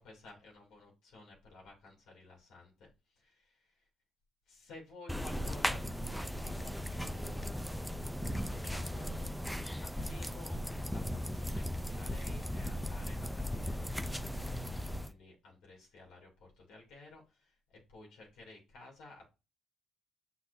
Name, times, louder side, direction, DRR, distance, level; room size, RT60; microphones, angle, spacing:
voice 1, 0.0-3.9 4.5-14.6 15.1-19.2, left 2 dB, 80° left, -1 dB, 2.8 m, -55 dB
sound 1, 5.1-15.1, equal, ahead, 0.5 m, -37 dB
6.7 x 5.7 x 2.7 m, 0.27 s
cardioid pair, 115°, 0 cm